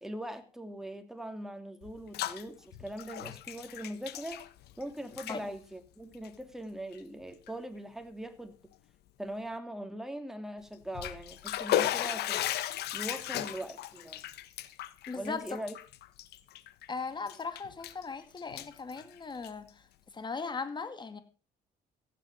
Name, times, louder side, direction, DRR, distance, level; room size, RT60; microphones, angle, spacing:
voice 1, 0.0-4.4 4.8-8.6 9.2-12.4 12.9-14.2 15.2-15.8, right 1 dB, ahead, 2.7 m, -41 dB
Bathtub (filling or washing), 1.8-2.4 2.7-4.8 5.1-5.4 6.1-6.3 6.9-7.0 7.5-7.6 10.7-16.9 17.3-18.0 18.4-19.7, left 12 dB, 75° left, 1.4 m, -35 dB
voice 2, 15.1-15.4 16.9-19.9 20.1-21.2, left 4 dB, 25° left, 2.3 m, -38 dB
15.5 x 10.0 x 5.3 m
cardioid pair, 110°, 17 cm